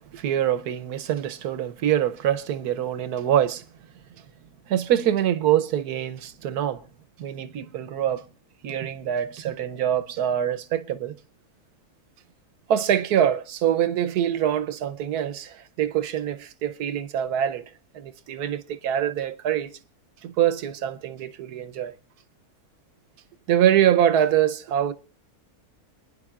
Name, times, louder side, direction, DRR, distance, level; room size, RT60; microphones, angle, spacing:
voice 1, 0.1-3.6 4.7-6.8 7.2-8.2 8.6-11.2 12.7-17.6 17.9-19.7 20.2-21.9 23.5-24.9, right 10 dB, 90° right, 1.3 m, -24 dB
28.5 x 10.0 x 2.4 m
omnidirectional pair, 1.6 m